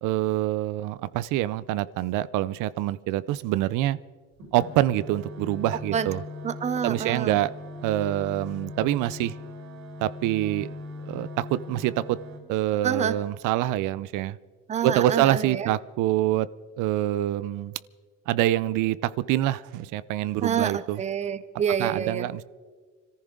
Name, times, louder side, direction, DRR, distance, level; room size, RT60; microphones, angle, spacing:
voice 1, 0.0-4.0 4.5-6.2 6.8-7.5 7.8-9.4 10.0-10.8 11.0-12.2 12.5-14.4 14.8-16.5 16.8-17.7 18.3-21.0 21.8-22.4, right 14 dB, 85° right, 0.6 m, -26 dB
sound 1, 4.4-12.4, left 2 dB, 70° right, 4.8 m, -40 dB
voice 2, 6.4-7.4 12.8-13.1 14.7-15.7 20.4-22.3, right 8 dB, 25° right, 0.6 m, -27 dB
25.5 x 14.5 x 3.8 m
cardioid pair, 160°, 30 cm